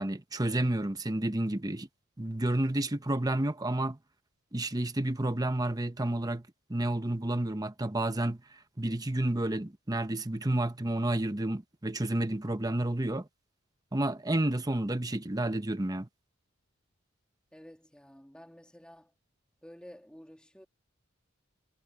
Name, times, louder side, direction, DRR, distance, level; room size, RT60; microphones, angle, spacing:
voice 1, 0.0-1.9 2.2-4.0 4.5-13.3 13.9-16.1, right 1 dB, 20° right, 1.0 m, -30 dB
voice 2, 17.5-19.1 19.6-20.7, equal, 5° left, 2.5 m, -51 dB
head